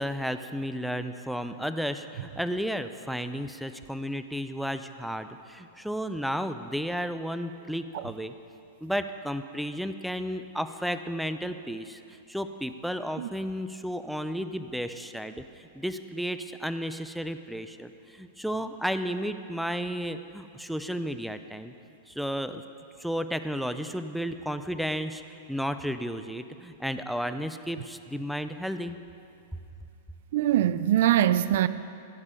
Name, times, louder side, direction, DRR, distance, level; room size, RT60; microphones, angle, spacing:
voice 1, 0.0-8.3 8.8-12.0 12.3-21.7 22.1-22.6 23.0-29.0, equal, ahead, 9 dB, 0.5 m, -33 dB
voice 2, 30.3-31.7, right 12 dB, 70° right, 14 dB, 0.4 m, -22 dB
16.0 x 5.4 x 8.2 m, 2.6 s
hypercardioid pair, 130°, 0 cm